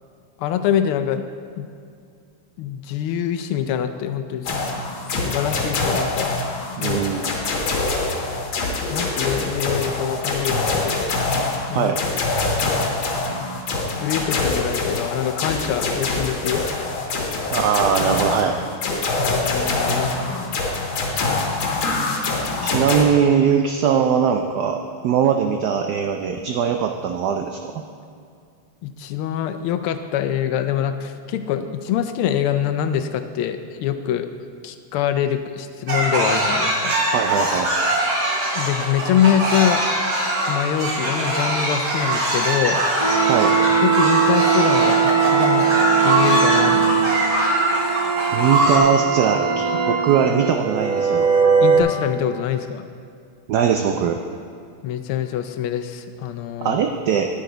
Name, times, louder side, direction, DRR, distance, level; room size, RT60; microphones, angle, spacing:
voice 1, 0.4-1.2 1.6-1.7 2.6-4.5 5.1-6.3 6.8-7.5 8.9-11.0 11.7-11.9 13.4-13.5 14.0-16.6 19.2-20.6 28.8-34.3 34.6-37.0 38.5-39.8 40.5-42.8 43.8-45.6 46.0-47.1 51.6-52.9 54.8-56.8, left 9 dB, 90° left, 9 dB, 1.5 m, -24 dB
sound 1, 4.5-23.0, left 3 dB, 70° left, 1.9 m, -24 dB
voice 2, 6.8-7.3 11.7-12.0 17.5-18.6 22.6-27.8 37.1-37.7 43.3-43.5 48.3-51.3 53.5-54.2 56.6-57.3, right 7 dB, 85° right, 5 dB, 0.9 m, -20 dB
sound 2, 35.9-48.8, right 1 dB, 55° right, 2.0 m, -22 dB
sound 3, 43.0-51.8, right 6 dB, 35° right, 0.6 m, -20 dB
10.5 x 9.1 x 3.9 m, 2.4 s
omnidirectional pair, 2.3 m